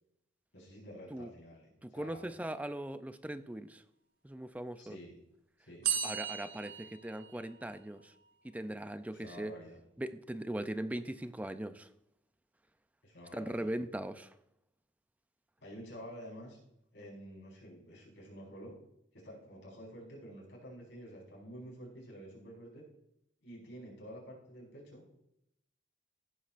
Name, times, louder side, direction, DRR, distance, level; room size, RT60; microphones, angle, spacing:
voice 1, 0.5-2.3 4.8-5.2 5.6-5.9 9.1-9.8 13.0-13.7 15.6-16.6 16.9-18.8 19.1-22.8 23.4-25.2, equal, 75° left, -4 dB, 5.0 m, -49 dB
voice 2, 1.8-3.8 4.2-5.0 6.0-8.1 8.4-9.5 10.0-11.9 13.3-14.3, right 1 dB, 10° right, 11 dB, 0.4 m, -40 dB
sound 1, 5.8-7.8, right 8 dB, 50° right, 1.7 m, -36 dB
16.5 x 9.6 x 2.5 m, 0.80 s
head